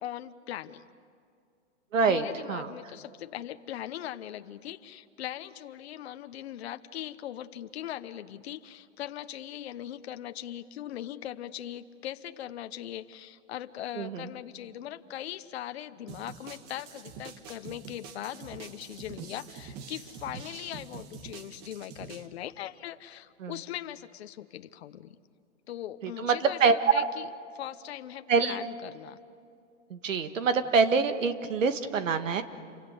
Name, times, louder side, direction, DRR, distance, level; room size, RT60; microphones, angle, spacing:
voice 1, 0.0-0.9 2.0-25.2 25.7-27.3 27.5-29.2, left 12 dB, 55° left, 10 dB, 1.0 m, -40 dB
voice 2, 1.9-2.7 13.9-14.3 23.4-23.6 26.0-27.1 28.3-28.6 29.9-32.4, right 5 dB, 85° right, 9 dB, 1.9 m, -25 dB
sound 1, 16.1-22.3, right 6 dB, 25° right, 1.4 m, -45 dB
29.5 x 24.5 x 8.2 m, 2.4 s
hypercardioid pair, 160°, 37 cm